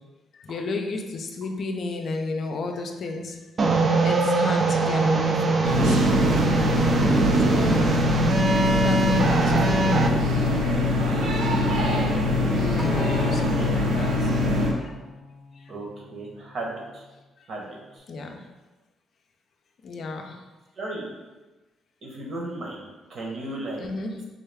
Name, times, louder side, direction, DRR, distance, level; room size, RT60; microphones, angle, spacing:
voice 1, 0.5-3.3 4.0-5.8 7.5-7.9 8.6-10.0 12.4-14.1 18.1-18.3 19.8-20.3 23.8-24.2, left 3 dB, 60° left, 3 dB, 0.4 m, -32 dB
sound 1, 3.6-10.1, right 3 dB, 45° right, 0.4 m, -22 dB
sound 2, 5.6-14.7, left 2 dB, 85° right, 0.7 m, -23 dB
Acoustic guitar, 12.8-17.1 17.9-18.0, left 1 dB, ahead, 0.6 m, -40 dB
voice 2, 15.7-17.0 17.5-17.6 20.8-21.1 22.0-23.8, right 2 dB, 60° right, -2 dB, 1.0 m, -35 dB
3.8 x 2.3 x 3.4 m, 1.2 s
cardioid pair, 90°, 0 cm